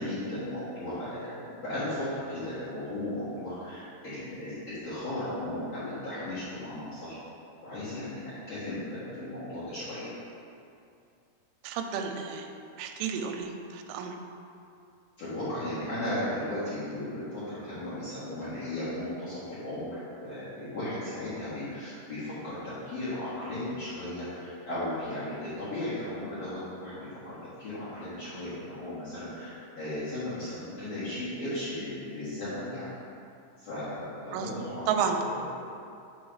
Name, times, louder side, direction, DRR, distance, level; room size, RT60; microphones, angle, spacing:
voice 1, 0.0-7.2 7.6-10.1 15.2-32.9 33.6-34.9 35.2-35.4, left 1 dB, 55° left, -14 dB, 1.9 m, -36 dB
voice 2, 11.6-12.5 12.8-14.2 34.3-34.5 34.9-35.2, right 7 dB, 85° right, 5 dB, 3.0 m, -31 dB
6.8 x 3.9 x 6.2 m, 2.5 s
omnidirectional pair, 5.5 m